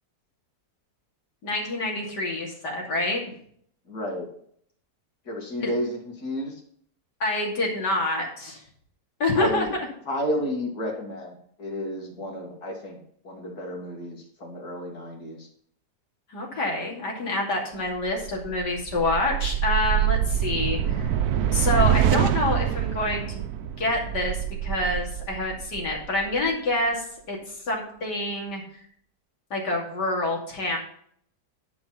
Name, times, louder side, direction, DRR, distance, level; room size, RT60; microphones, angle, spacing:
voice 1, 1.4-3.2 5.6-5.7 7.2-8.6 9.2-9.7 16.3-21.1 21.5-23.4 23.8-27.4 27.7-28.6 29.5-30.8, left 2 dB, 90° left, -1 dB, 3.2 m, -27 dB
voice 2, 3.9-4.3 5.3-6.6 9.3-9.8 10.1-15.5, equal, 70° left, 0 dB, 2.9 m, -32 dB
sound 1, 18.1-26.5, right 10 dB, 70° right, 1.1 m, -25 dB
11.0 x 5.2 x 5.7 m, 0.63 s
omnidirectional pair, 1.8 m